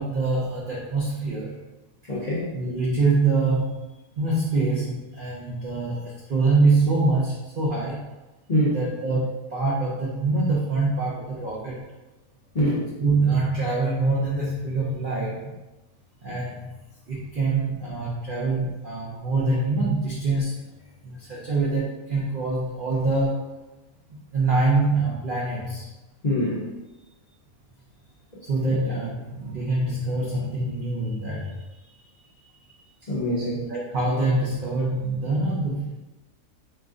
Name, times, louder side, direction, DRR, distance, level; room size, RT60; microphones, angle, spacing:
voice 1, 0.0-1.6 2.5-8.1 8.7-11.8 13.0-15.5 16.2-16.7 17.1-20.6 21.0-23.6 24.3-25.9 28.5-31.6 33.6-36.0, right 3 dB, 90° right, -6 dB, 0.4 m, -25 dB
voice 2, 2.1-2.5 8.5-8.8 12.5-12.9 26.2-26.6 33.1-33.6, equal, 85° left, -7 dB, 0.3 m, -24 dB
3.0 x 2.4 x 3.6 m, 1.1 s
omnidirectional pair, 1.7 m